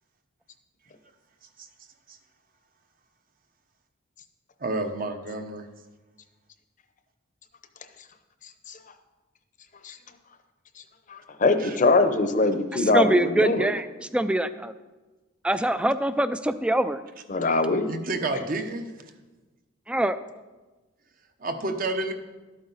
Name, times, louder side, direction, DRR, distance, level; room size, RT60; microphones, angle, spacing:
voice 1, 4.6-5.7 11.6-11.8 17.9-18.8 21.4-22.1, right 2 dB, 45° right, 6 dB, 0.9 m, -30 dB
voice 2, 11.1-13.7 17.3-17.9, left 3 dB, 40° left, 8 dB, 0.7 m, -22 dB
voice 3, 12.7-13.9 14.1-14.7 15.4-17.0 19.9-20.2, right 1 dB, 5° right, 12 dB, 0.3 m, -24 dB
12.0 x 8.7 x 4.0 m, 1.2 s
head